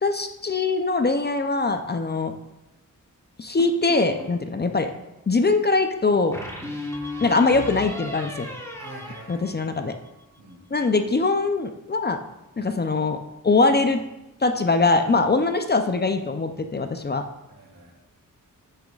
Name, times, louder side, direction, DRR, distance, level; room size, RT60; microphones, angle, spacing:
voice 1, 0.0-2.3 3.4-4.9 5.3-6.3 7.2-8.5 9.3-9.9 10.7-12.2 12.6-13.2 13.4-14.0 14.4-17.2, left 3 dB, 30° left, 7 dB, 0.5 m, -22 dB
sound 1, 3.6-4.5 6.3-10.1, left 1 dB, 10° left, 1.3 m, -36 dB
voice 2, 8.8-9.7 10.4-10.6 17.5-17.9, right 2 dB, 75° right, -3 dB, 2.9 m, -45 dB
9.3 x 9.0 x 2.4 m, 0.96 s
wide cardioid pair, 110°, 34 cm